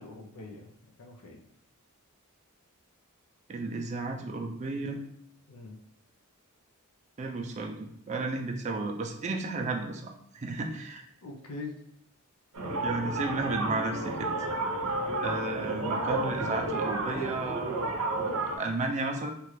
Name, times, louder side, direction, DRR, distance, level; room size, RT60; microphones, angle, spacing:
voice 1, 0.0-1.5 5.5-5.8 11.2-11.8, left 3 dB, 85° left, 3 dB, 0.6 m, -43 dB
voice 2, 3.5-5.0 7.2-11.0 12.8-14.3 15.2-19.3, right 3 dB, 30° right, 2 dB, 0.4 m, -33 dB
sound 1, 12.5-18.6, right 2 dB, 75° right, 0.6 m, -32 dB
2.9 x 2.4 x 3.1 m, 0.72 s
head